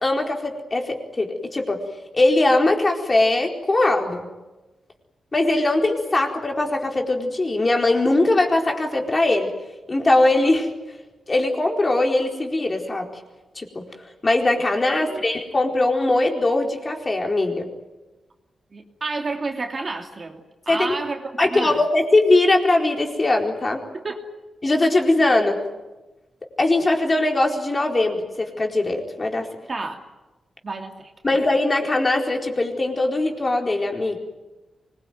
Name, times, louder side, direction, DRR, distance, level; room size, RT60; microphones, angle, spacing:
voice 1, 0.0-1.8 2.1-4.3 5.3-9.5 9.9-10.7 11.3-13.1 13.5-13.8 14.2-17.7 20.7-20.9 21.4-23.8 24.6-25.6 26.6-29.5 31.2-34.2, left 2 dB, 25° left, 2 dB, 4.4 m, -20 dB
voice 2, 15.0-15.3 18.7-21.8 23.9-24.3 29.7-30.0 30.6-31.1, right 3 dB, 35° right, 3 dB, 2.8 m, -30 dB
24.5 x 22.5 x 9.4 m, 1.1 s
wide cardioid pair, 115°, 0 cm